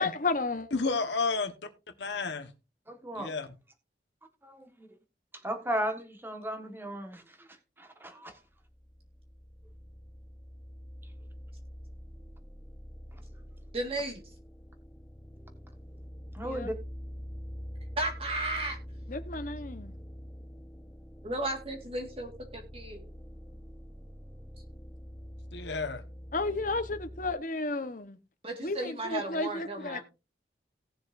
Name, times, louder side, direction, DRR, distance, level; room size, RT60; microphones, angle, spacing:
voice 1, 0.0-0.7 16.4-16.7 19.1-20.0 26.3-28.2 28.6-30.0, left 3 dB, 50° left, 1.1 m, -32 dB
voice 2, 0.7-1.7 2.0-2.5 3.1-3.5 25.5-26.0, left 4 dB, 85° left, 1.2 m, -31 dB
voice 3, 2.9-3.3 4.4-4.9 5.4-7.5 7.8-8.3 16.3-16.7, right 1 dB, 15° right, 1.5 m, -35 dB
sound 1, 8.4-27.4, equal, 10° left, 0.8 m, -45 dB
voice 4, 13.7-14.2 18.0-18.8 21.2-23.0 28.4-30.0, right 2 dB, 35° right, 1.7 m, -34 dB
18.0 x 6.9 x 2.6 m
head